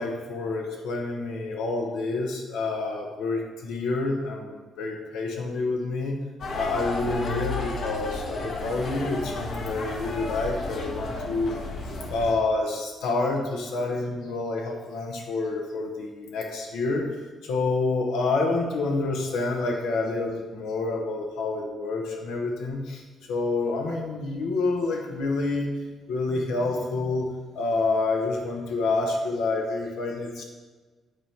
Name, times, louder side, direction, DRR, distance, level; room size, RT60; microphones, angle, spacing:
voice 1, 0.0-6.2 6.5-11.7 12.1-17.0 17.4-25.7 26.1-27.3 27.5-30.4, left 3 dB, 90° left, 1 dB, 1.0 m, -28 dB
sound 1, 6.4-12.3, left 2 dB, 60° left, 1.1 m, -33 dB
8.4 x 3.6 x 4.3 m, 1.3 s
cardioid pair, 90°, 0 cm